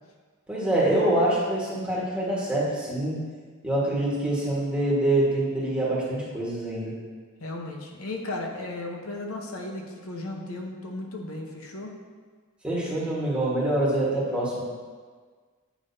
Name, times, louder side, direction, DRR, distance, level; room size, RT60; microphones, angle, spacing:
voice 1, 0.5-3.2 3.6-6.9 12.6-14.6, right 1 dB, 5° right, -7 dB, 1.5 m, -25 dB
voice 2, 7.4-11.9, left 2 dB, 70° left, 2 dB, 0.9 m, -35 dB
8.4 x 5.4 x 2.7 m, 1.5 s
head